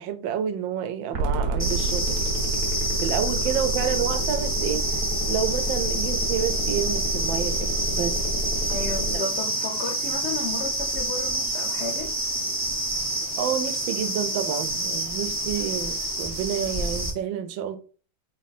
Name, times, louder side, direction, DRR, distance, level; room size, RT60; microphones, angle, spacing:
voice 1, 0.0-2.2 3.0-5.0 5.3-8.2 9.1-9.2 13.4-17.8, right 9 dB, 80° right, 1.3 m, -29 dB
sound 1, 1.1-9.1, right 1 dB, 60° right, 1.0 m, -28 dB
sound 2, 1.6-17.1, right 1 dB, 30° right, 0.3 m, -28 dB
voice 2, 8.7-12.1, left 3 dB, 60° left, 0.7 m, -33 dB
3.6 x 2.7 x 4.0 m
omnidirectional pair, 2.1 m